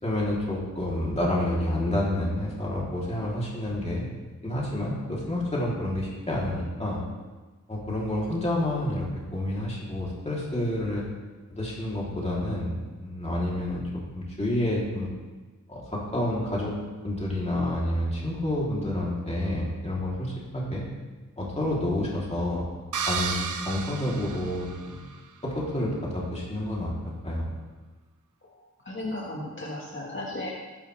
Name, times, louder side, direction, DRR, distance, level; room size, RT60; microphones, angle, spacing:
voice 1, 0.0-4.1 4.4-7.0 7.7-11.0 11.5-13.8 14.1-15.1 15.7-16.7 17.0-20.9 21.4-22.6 23.1-25.0 25.4-26.9 27.2-27.5, left 1 dB, 20° left, -5 dB, 3.2 m, -29 dB
sound 1, 22.9-25.2, right 5 dB, 85° right, 0.8 m, -33 dB
voice 2, 28.8-30.5, left 1 dB, 40° left, -3 dB, 1.7 m, -34 dB
19.5 x 10.0 x 3.4 m, 1.3 s
wide cardioid pair, 120°, 30 cm